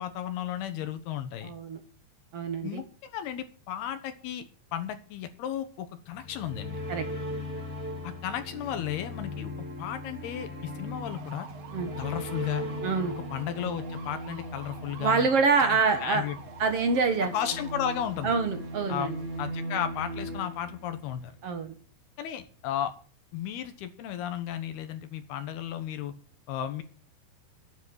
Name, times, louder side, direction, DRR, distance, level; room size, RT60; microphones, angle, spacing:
voice 1, 0.0-1.5 2.6-4.4 4.7-6.8 8.0-9.5 9.8-11.5 12.0-12.7 13.2-15.3 15.6-16.4 17.3-18.4 18.9-19.1 19.4-21.4 22.2-22.9 23.3-26.1 26.5-26.8, left 10 dB, 75° left, 9 dB, 3.1 m, -34 dB
voice 2, 1.4-1.8 2.3-2.8 6.9-7.0 11.7-11.9 12.8-13.1 15.0-16.2 16.6-17.3 18.2-19.2 21.4-21.7, right 4 dB, 60° right, 7 dB, 1.6 m, -26 dB
sound 1, 6.1-21.3, left 1 dB, 20° right, 3.9 m, -38 dB
sound 2, 10.9-19.4, right 7 dB, 80° right, 4.2 m, -49 dB
11.0 x 9.8 x 8.0 m, 0.40 s
omnidirectional pair, 4.6 m